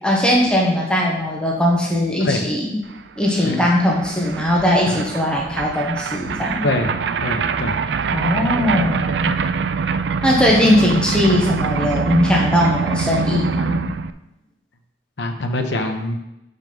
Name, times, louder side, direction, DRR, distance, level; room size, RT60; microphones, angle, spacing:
voice 1, 0.0-2.8 3.2-6.7 8.1-9.4 10.2-13.9, left 1 dB, 5° left, -3 dB, 1.2 m, -19 dB
sound 1, 3.0-3.1 3.2-14.1, right 5 dB, 80° right, 0.4 m, -24 dB
voice 2, 6.6-7.0 7.2-7.7 15.2-16.2, left 2 dB, 80° left, 4 dB, 0.9 m, -23 dB
5.9 x 5.5 x 5.4 m, 0.88 s
head